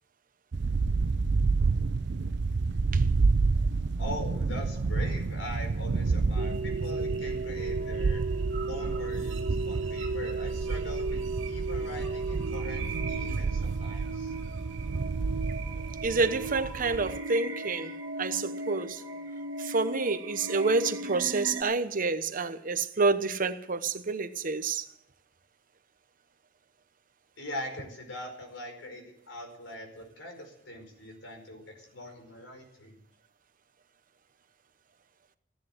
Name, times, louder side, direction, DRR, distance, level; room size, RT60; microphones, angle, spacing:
sound 1, 0.5-17.2, right 4 dB, 65° right, 0.6 m, -30 dB
voice 1, 4.0-8.2 8.7-14.3 27.4-33.0, left 1 dB, 80° left, 5.0 m, -42 dB
sound 2, 6.4-21.6, right 3 dB, 90° right, 2.3 m, -36 dB
voice 2, 16.0-17.9 18.2-19.0 19.6-24.9, right 4 dB, 45° right, 1.0 m, -28 dB
15.5 x 10.5 x 7.9 m
head